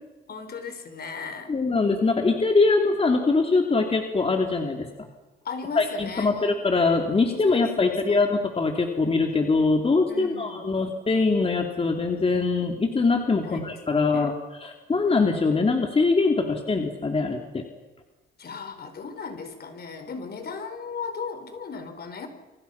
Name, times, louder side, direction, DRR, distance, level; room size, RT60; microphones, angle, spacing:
voice 1, 0.3-1.5 5.4-6.5 7.3-8.2 10.1-10.7 13.4-14.3 16.4-16.7 18.4-22.3, left 5 dB, 50° left, 8 dB, 4.5 m, -37 dB
voice 2, 1.5-4.9 5.7-17.6, left 3 dB, 30° left, 3 dB, 3.0 m, -23 dB
29.0 x 24.5 x 5.9 m, 1.1 s
cardioid pair, 90°, 20 cm